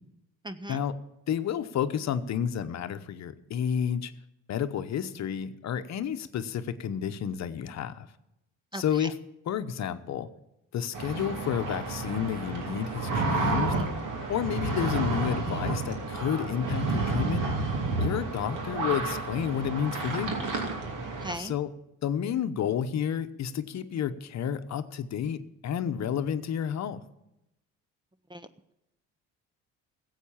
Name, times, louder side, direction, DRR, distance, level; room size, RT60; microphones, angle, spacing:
voice 1, 0.4-0.8 8.7-9.1 21.2-21.5 28.3-28.7, equal, 15° right, 13 dB, 0.6 m, -38 dB
voice 2, 1.3-4.1 4.5-8.1 8.7-9.1 9.5-10.3 10.7-13.7 14.3-17.5 18.0-20.4 21.3-21.7 22.0-27.0, left 8 dB, 50° left, 10 dB, 0.9 m, -30 dB
sound 1, 10.9-21.3, right 3 dB, 60° right, 2.7 m, -30 dB
14.5 x 8.2 x 7.3 m, 0.87 s
supercardioid pair, 85°, 35 cm